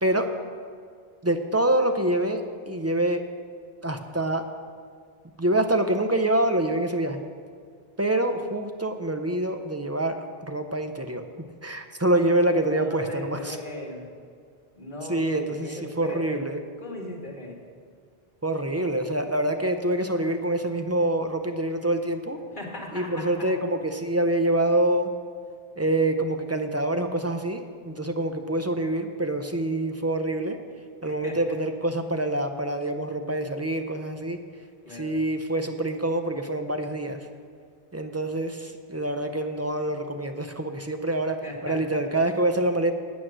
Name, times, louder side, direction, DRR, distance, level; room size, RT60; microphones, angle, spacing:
voice 1, 1.2-3.2 3.8-4.4 5.4-7.3 8.0-11.2 11.6-13.6 15.1-16.6 18.4-22.4 22.9-25.1 25.8-30.6 31.0-34.4 34.9-37.3 37.9-42.9, right 1 dB, 25° right, 6 dB, 0.3 m, -26 dB
voice 2, 12.7-14.1 14.8-16.4 16.8-17.6 22.6-23.5 31.0-31.6 34.8-35.2 41.4-42.0, left 1 dB, 50° left, -1 dB, 1.9 m, -38 dB
9.0 x 8.9 x 6.1 m, 2.1 s
omnidirectional pair, 1.1 m